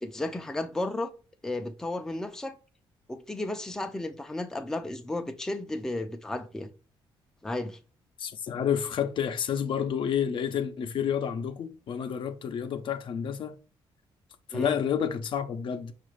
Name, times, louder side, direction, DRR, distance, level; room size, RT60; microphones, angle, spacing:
voice 1, 0.0-1.1 1.4-2.5 3.1-6.7 7.4-7.8 14.5-14.8, left 2 dB, 5° left, 0.4 m, -33 dB
voice 2, 8.2-13.6 14.5-15.9, left 8 dB, 60° left, 0.5 m, -29 dB
5.3 x 2.4 x 3.1 m
cardioid pair, 110°, 9 cm